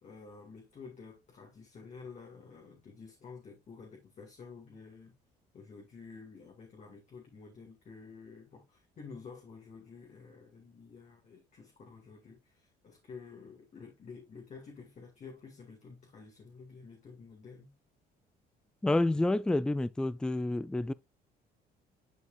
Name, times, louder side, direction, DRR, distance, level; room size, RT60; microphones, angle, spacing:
voice 1, 0.0-5.1 5.5-17.7, left 5 dB, 45° left, 2.2 m, -50 dB
voice 2, 18.8-20.9, left 2 dB, 5° left, 0.4 m, -29 dB
11.0 x 4.7 x 2.5 m
cardioid pair, 110°, 17 cm